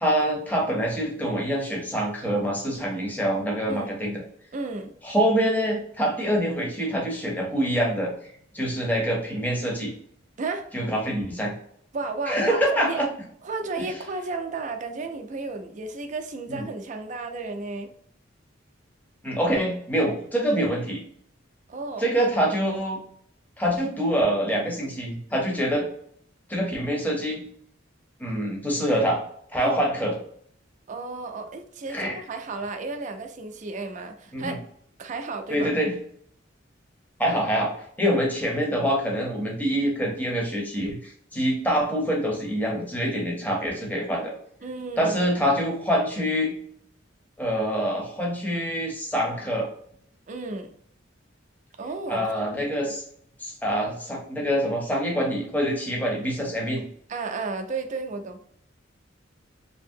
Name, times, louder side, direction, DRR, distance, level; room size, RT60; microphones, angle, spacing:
voice 1, 0.0-4.2 5.0-9.9 10.7-11.5 12.3-13.1 16.5-16.7 19.2-21.0 22.0-23.0 23.6-25.9 26.5-27.5 28.2-29.2 29.5-30.1 31.9-32.2 34.3-34.5 35.5-36.0 37.2-44.3 45.0-46.5 47.4-49.7 52.1-53.0 53.4-56.8, equal, 10° left, -1 dB, 0.7 m, -25 dB
voice 2, 4.5-4.9 10.4-10.9 11.9-13.0 13.4-17.9 21.7-22.1 29.6-29.9 30.9-34.6 35.0-35.7 38.0-38.2 44.6-45.1 50.3-50.7 51.8-52.3 52.6-52.9 57.1-58.4, right 3 dB, 40° right, 6 dB, 0.4 m, -33 dB
2.8 x 2.7 x 2.6 m, 0.64 s
head